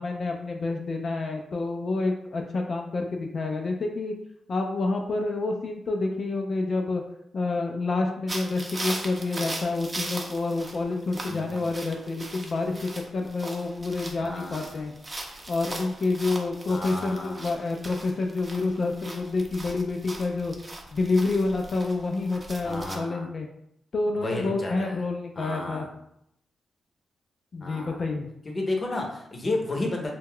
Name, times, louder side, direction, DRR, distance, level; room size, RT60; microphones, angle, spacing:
voice 1, 0.0-4.1 4.5-7.0 7.3-14.9 15.5-20.5 20.9-23.5 23.9-25.8 27.5-28.3, left 3 dB, 55° left, 2 dB, 0.3 m, -28 dB
sound 1, 8.3-23.0, right 2 dB, 35° right, 0.6 m, -39 dB
voice 2, 11.3-11.7 14.2-14.8 16.7-17.5 22.6-23.3 24.1-25.0 25.4-25.9 27.6-28.1 28.4-30.1, left 2 dB, 40° left, 1 dB, 0.7 m, -32 dB
2.2 x 2.1 x 3.6 m, 0.78 s
supercardioid pair, 50°, 0 cm